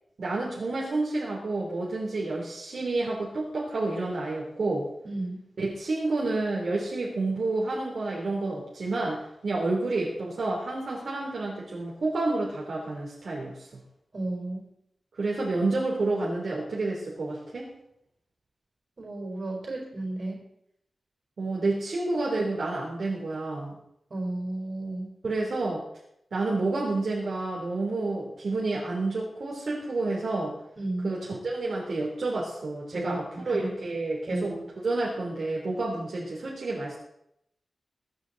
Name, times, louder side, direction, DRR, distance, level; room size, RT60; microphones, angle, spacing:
voice 1, 0.2-4.9 5.6-13.7 15.1-17.7 21.4-23.8 25.2-25.8 26.3-30.6 31.0-34.5 34.8-37.0, right 2 dB, 55° right, -4 dB, 3.2 m, -29 dB
voice 2, 5.0-5.4 14.1-14.7 19.0-20.4 24.1-25.1 30.8-31.2 32.9-33.7 34.3-34.7, right 2 dB, 40° right, -1 dB, 4.4 m, -33 dB
21.5 x 9.7 x 4.0 m, 0.77 s
wide cardioid pair, 170°, 0 cm